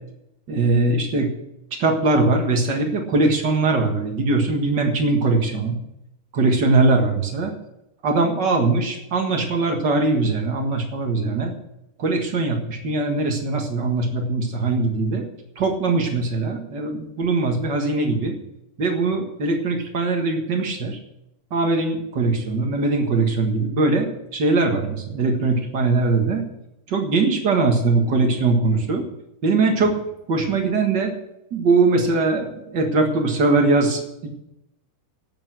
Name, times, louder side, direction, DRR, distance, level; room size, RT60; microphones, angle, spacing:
voice 1, 0.5-1.3 1.8-5.8 6.3-7.5 8.0-11.5 12.0-15.2 15.5-18.3 18.8-21.0 21.5-26.4 26.9-29.0 29.4-29.9 30.3-31.1 31.5-34.3, right 3 dB, 70° right, 2 dB, 1.0 m, -21 dB
12.0 x 8.3 x 7.6 m, 0.83 s
omnidirectional pair, 4.7 m